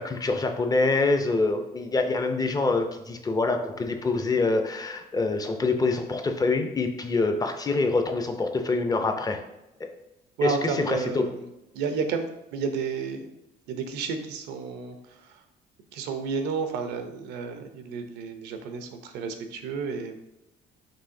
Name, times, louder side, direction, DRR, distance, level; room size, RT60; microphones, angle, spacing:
voice 1, 0.0-9.4 9.8-9.9 10.4-10.5 10.8-11.2, left 3 dB, 20° left, 6 dB, 0.5 m, -25 dB
voice 2, 10.4-11.5 11.7-13.4 13.7-15.4 15.9-20.2, right 5 dB, 85° right, 7 dB, 0.6 m, -32 dB
5.5 x 3.1 x 2.6 m, 0.93 s
cardioid pair, 110°, 17 cm